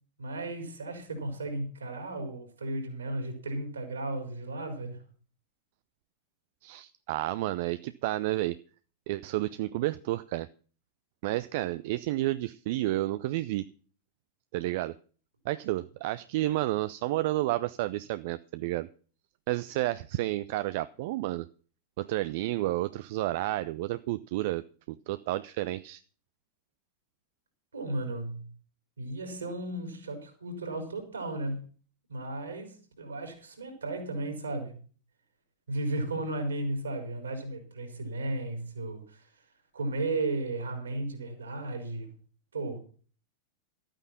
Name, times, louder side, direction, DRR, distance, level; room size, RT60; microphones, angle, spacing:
voice 1, 0.2-5.0 27.7-28.5 29.0-31.6 32.1-34.8 35.7-39.3 39.7-42.1 42.5-42.8, right 2 dB, 75° right, 4 dB, 4.6 m, -34 dB
voice 2, 6.6-8.6 9.1-10.5 11.2-13.7 14.5-14.9 15.5-18.9 19.5-21.5 22.0-26.0, right 16 dB, 50° right, 14 dB, 0.5 m, -31 dB
13.0 x 9.0 x 5.9 m, 0.40 s
figure-of-eight pair, 90°, 0 cm